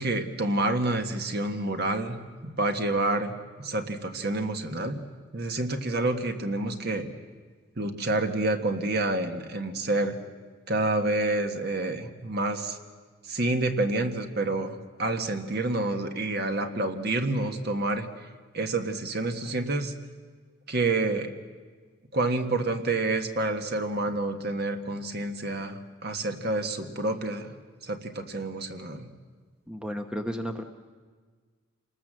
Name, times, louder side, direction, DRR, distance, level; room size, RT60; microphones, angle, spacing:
voice 1, 0.0-2.2 2.4-3.3 3.6-5.0 5.3-7.1 7.8-10.2 10.7-12.8 13.3-18.1 18.5-19.9 20.7-21.3 22.1-27.5 27.8-29.1, right 2 dB, 50° right, 6 dB, 1.5 m, -28 dB
voice 2, 29.7-30.6, equal, 5° right, 5 dB, 0.9 m, -33 dB
27.5 x 19.5 x 7.6 m, 1.5 s
head